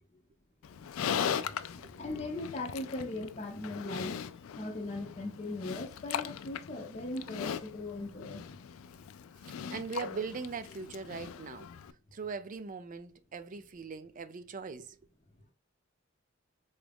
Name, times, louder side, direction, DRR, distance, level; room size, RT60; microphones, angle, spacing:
Livestock farm animals working animals, 0.6-11.9, left 8 dB, 85° left, 0.3 m, -39 dB
voice 1, 1.4-4.1 4.6-8.4, left 2 dB, 35° left, 0.6 m, -39 dB
voice 2, 9.4-11.8 12.1-15.0, right 5 dB, 40° right, 0.4 m, -41 dB
3.9 x 2.4 x 3.4 m
head